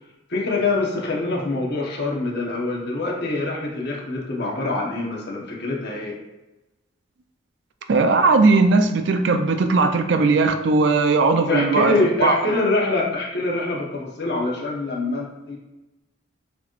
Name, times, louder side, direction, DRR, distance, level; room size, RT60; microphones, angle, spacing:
voice 1, 0.3-6.2 11.5-15.6, left 2 dB, 55° left, -2 dB, 1.0 m, -24 dB
voice 2, 7.9-11.9 12.2-12.3, right 3 dB, 60° right, 7 dB, 0.4 m, -18 dB
6.8 x 3.0 x 2.5 m, 1.0 s
head